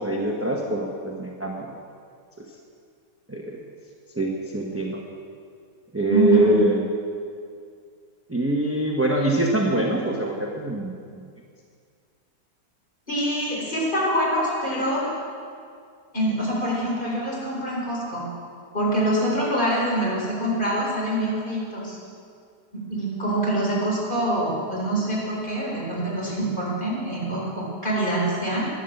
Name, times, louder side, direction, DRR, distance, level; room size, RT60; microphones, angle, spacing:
voice 1, 0.0-1.7 3.3-3.6 4.2-5.0 5.9-6.8 8.3-10.9, right 1 dB, 10° right, -1 dB, 0.9 m, -24 dB
voice 2, 6.1-6.6 13.1-15.1 16.1-18.3 18.7-22.0 22.7-28.7, right 1 dB, 30° left, -5 dB, 4.5 m, -25 dB
11.0 x 11.0 x 7.9 m, 2.2 s
omnidirectional pair, 1.7 m